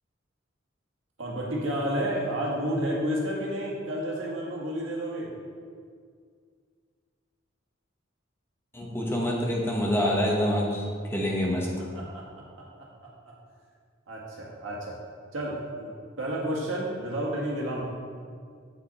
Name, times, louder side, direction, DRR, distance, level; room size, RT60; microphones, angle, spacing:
voice 1, 1.2-5.3 11.9-12.6 14.1-15.0 15.3-17.8, right 1 dB, 75° right, -3 dB, 1.7 m, -31 dB
voice 2, 8.7-10.8 11.1-11.7, equal, 10° left, -2 dB, 1.1 m, -26 dB
8.0 x 5.1 x 4.2 m, 2.1 s
head